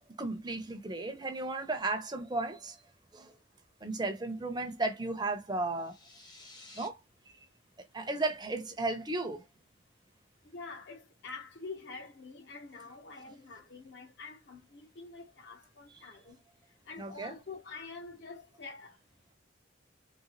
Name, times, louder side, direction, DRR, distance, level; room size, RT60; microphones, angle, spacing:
voice 1, 0.2-2.8 3.1-3.4 3.8-6.0 6.7-7.0 7.9-9.4 15.9-16.0 17.0-17.3, right 2 dB, 20° right, 0.7 m, -34 dB
sound 1, 5.7-6.9, left 2 dB, 20° left, 0.7 m, -53 dB
voice 2, 10.4-19.0, left 4 dB, 55° left, 0.9 m, -47 dB
3.8 x 2.2 x 2.9 m
head